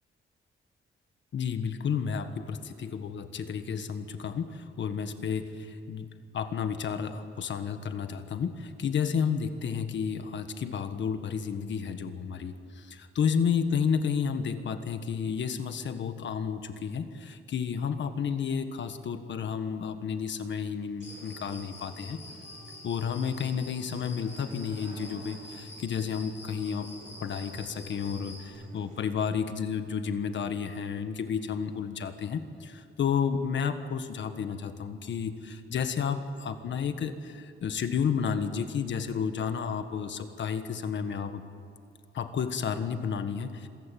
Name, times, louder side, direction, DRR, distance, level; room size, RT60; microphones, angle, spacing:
voice 1, 1.3-22.2 22.8-26.9 27.2-41.4 42.1-43.7, left 7 dB, 60° left, 9 dB, 1.5 m, -31 dB
Cricket, 21.0-28.5, left 2 dB, 35° left, 4.8 m, -47 dB
Human voice / Acoustic guitar, 21.0-29.0, right 1 dB, 35° right, 5.6 m, -50 dB
26.5 x 15.5 x 9.2 m, 2.4 s
wide cardioid pair, 180°, 21 cm